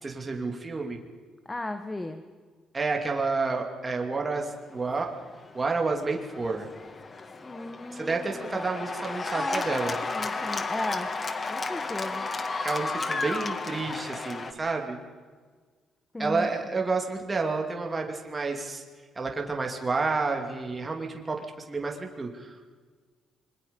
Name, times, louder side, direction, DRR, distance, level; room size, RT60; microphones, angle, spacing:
voice 1, 0.0-1.0 2.7-5.1 5.5-6.7 7.9-10.0 12.6-15.0 16.2-18.8 19.2-21.4 21.7-22.7, right 3 dB, 25° right, 2 dB, 2.6 m, -30 dB
voice 2, 1.4-2.2 7.4-8.6 9.3-11.1 11.5-12.3 16.1-16.8, left 2 dB, 15° left, 8 dB, 1.4 m, -36 dB
Cheering / Applause, 4.8-14.5, left 3 dB, 35° left, 1.6 m, -33 dB
26.0 x 21.5 x 5.4 m, 1.5 s
cardioid pair, 90°, 0 cm